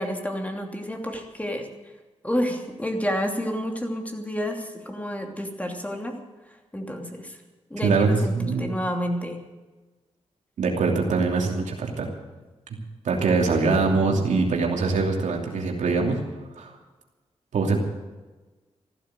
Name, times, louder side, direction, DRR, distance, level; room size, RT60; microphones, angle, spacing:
voice 1, 0.0-1.7 2.2-6.2 6.7-7.4 7.7-9.4, equal, 10° left, 2 dB, 2.8 m, -29 dB
voice 2, 8.3-8.7 10.6-12.1 13.0-16.2 16.6-16.7 17.5-17.8, right 4 dB, 85° right, 1 dB, 2.8 m, -23 dB
15.0 x 12.0 x 7.7 m, 1.2 s
cardioid pair, 65°, 12 cm